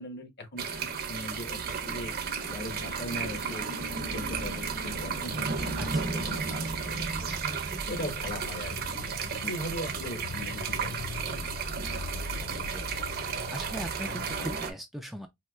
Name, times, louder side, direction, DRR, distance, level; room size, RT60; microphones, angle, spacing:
voice 1, 0.0-2.1 2.5-3.7 4.1-7.3 7.9-8.8 9.4-10.9 11.2-11.4 12.3-12.5, left 1 dB, 50° left, 1.2 m, -39 dB
sound 1, 0.6-14.7, right 5 dB, 45° right, 0.7 m, -33 dB
voice 2, 5.8-6.2 12.6-13.0 13.5-15.3, equal, ahead, 0.4 m, -39 dB
sound 2, 7.3-14.6, left 4 dB, 85° left, 0.5 m, -43 dB
4.3 x 2.8 x 2.3 m
head